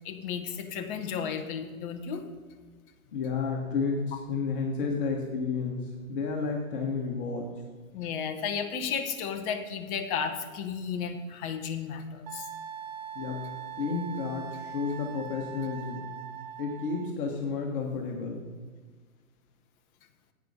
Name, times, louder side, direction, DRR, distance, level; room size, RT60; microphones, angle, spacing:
voice 1, 0.0-2.2 7.9-12.5, left 6 dB, 15° left, 6 dB, 0.7 m, -33 dB
voice 2, 3.1-7.4 13.1-13.5 13.8-16.1 16.6-18.4, left 4 dB, 40° left, 0 dB, 1.5 m, -31 dB
Wind instrument woodwind instrument, 12.3-17.1, right 8 dB, 30° right, 0.5 m, -41 dB
10.0 x 8.6 x 5.0 m, 1.5 s
figure-of-eight pair, 120°, 43 cm